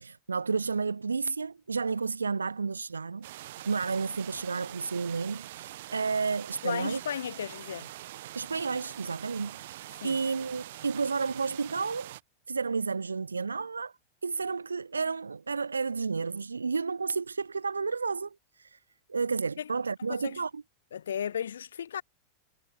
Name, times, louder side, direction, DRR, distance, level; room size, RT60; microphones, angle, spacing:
voice 1, 0.0-7.0 8.3-12.1 12.5-13.9 14.2-18.8 19.1-20.6, right 4 dB, 75° right, 0.5 m, -31 dB
sound 1, 3.2-12.2, right 15 dB, 55° right, 1.0 m, -44 dB
voice 2, 6.6-7.9 10.0-10.2 19.6-19.7 20.1-20.4 20.9-22.0, left 8 dB, 65° left, 0.9 m, -35 dB
figure-of-eight pair, 90°, 0 cm